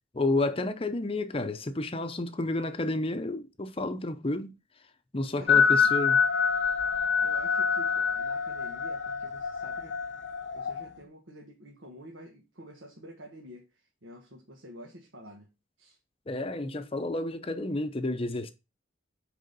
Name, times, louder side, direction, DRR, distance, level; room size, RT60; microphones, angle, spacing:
voice 1, 0.1-4.5 5.1-6.2 16.3-18.5, left 2 dB, 30° left, 0.7 m, -30 dB
voice 2, 5.4-5.8 7.2-10.0 10.5-13.7 14.0-15.5 15.8-16.0, equal, 75° right, 1.6 m, -48 dB
sound 1, 5.5-10.9, left 6 dB, 60° left, 0.8 m, -26 dB
6.5 x 5.0 x 5.3 m
head